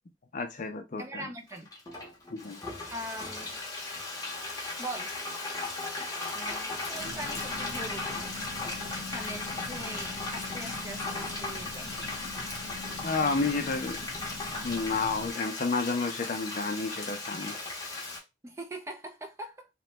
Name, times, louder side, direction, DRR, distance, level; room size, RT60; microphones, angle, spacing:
voice 1, 0.3-1.3 2.3-2.7 13.0-14.0 14.6-17.6, left 4 dB, 45° left, 0.4 m, -31 dB
voice 2, 1.0-1.7 2.9-3.6 4.8-5.1 6.3-8.2 9.1-11.9 18.4-19.7, right 1 dB, 15° right, 0.4 m, -41 dB
Frying (food), 1.5-18.2, left 3 dB, 20° left, 0.7 m, -37 dB
sound 1, 7.0-15.3, left 2 dB, 45° right, 0.7 m, -44 dB
2.9 x 2.1 x 3.1 m
head